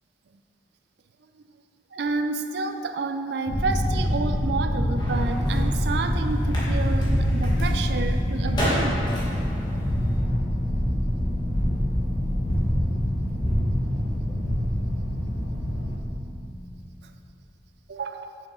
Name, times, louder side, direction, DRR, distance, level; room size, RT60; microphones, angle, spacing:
voice 1, 1.9-9.0 17.9-18.4, right 3 dB, 70° right, 8 dB, 0.4 m, -30 dB
sound 1, 3.5-16.0, equal, 40° left, 1.1 m, -25 dB
sound 2, 5.0-10.2, equal, 25° left, 1.5 m, -28 dB
6.8 x 6.1 x 3.8 m, 2.9 s
head